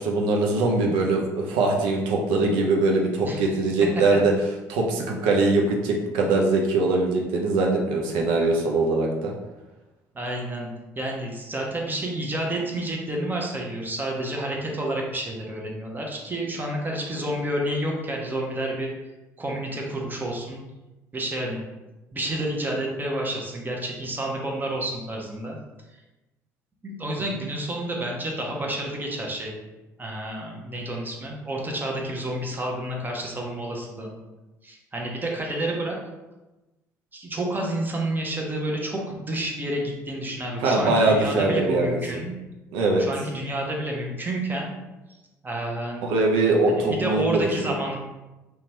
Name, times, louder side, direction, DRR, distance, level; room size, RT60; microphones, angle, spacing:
voice 1, 0.0-4.3 4.7-9.3 40.6-42.0 42.7-43.0 46.0-47.7, right 3 dB, 65° right, 0 dB, 0.4 m, -22 dB
voice 2, 10.1-10.7 11.0-18.9 19.4-20.6 21.1-21.6 22.1-25.6 26.8-29.5 30.0-34.2 34.6-36.0 37.1-42.4 43.0-44.7 45.4-46.1 46.9-48.0, right 1 dB, 20° right, -1 dB, 0.7 m, -29 dB
2.8 x 2.2 x 2.8 m, 1.1 s
figure-of-eight pair, 55°, 9 cm